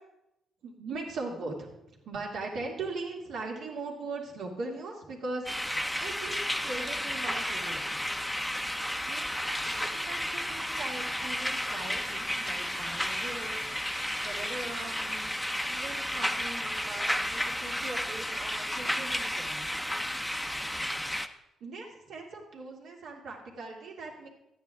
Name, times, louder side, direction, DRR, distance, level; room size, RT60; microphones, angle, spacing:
voice 1, 0.6-5.5 6.0-7.9 9.1-13.7 14.2-15.3 15.7-19.8 21.6-24.3, right 3 dB, 75° right, -1 dB, 2.4 m, -40 dB
sound 1, 5.5-21.3, left 1 dB, 5° left, 0.6 m, -32 dB
12.5 x 9.5 x 3.5 m, 0.89 s
cardioid pair, 90°, 0 cm